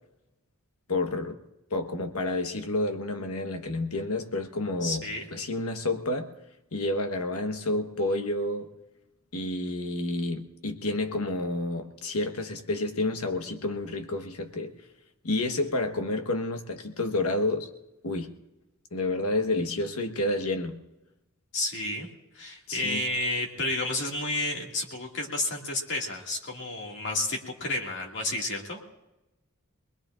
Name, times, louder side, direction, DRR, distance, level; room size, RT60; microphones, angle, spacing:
voice 1, 0.9-1.4 1.7-6.3 6.7-8.7 9.3-14.7 15.2-17.7 18.0-18.3 18.9-20.8 22.7-23.0, left 2 dB, 85° left, 1.3 m, -29 dB
voice 2, 4.8-5.3 21.5-22.1 22.3-28.8, left 2 dB, 55° left, 2.1 m, -31 dB
24.0 x 21.0 x 2.5 m
head